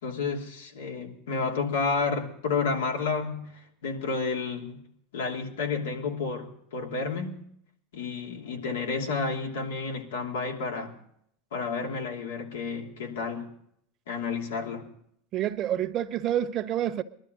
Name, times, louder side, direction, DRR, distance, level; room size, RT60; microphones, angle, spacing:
voice 1, 0.0-4.8 5.1-7.4 7.9-11.0 11.5-13.5 14.1-14.8, left 4 dB, 85° left, 3.0 m, -31 dB
voice 2, 15.3-17.0, right 11 dB, 40° right, 1.2 m, -28 dB
22.0 x 12.5 x 3.9 m
supercardioid pair, 115°, 0 cm